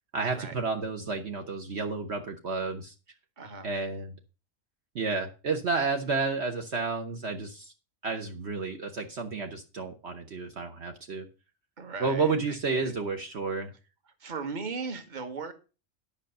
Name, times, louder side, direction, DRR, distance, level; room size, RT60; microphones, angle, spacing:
voice 1, 0.1-2.9 3.6-4.1 4.9-7.7 8.0-11.3 12.0-13.7, right 4 dB, 60° right, 4 dB, 1.3 m, -31 dB
voice 2, 3.4-3.7 11.8-12.9 14.2-15.5, right 4 dB, 40° right, 8 dB, 1.4 m, -38 dB
10.5 x 5.7 x 6.5 m, 0.32 s
omnidirectional pair, 1.3 m